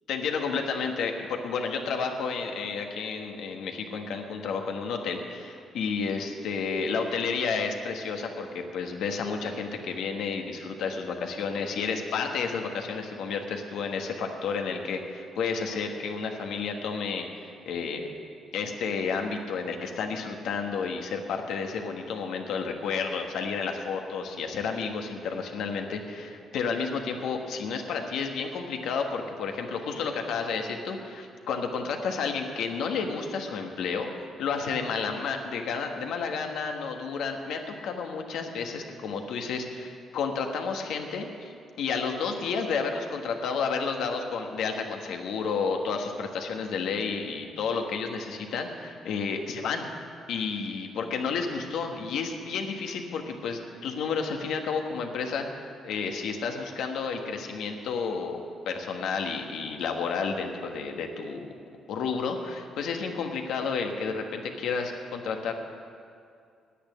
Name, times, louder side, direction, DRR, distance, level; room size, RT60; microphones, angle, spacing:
voice 1, 0.1-18.1 18.5-34.1 34.4-49.9 50.3-55.4 55.8-61.5 61.9-65.5, left 5 dB, 80° left, 4 dB, 1.4 m, -31 dB
10.0 x 8.6 x 10.0 m, 2.4 s
cardioid pair, 110°, 0 cm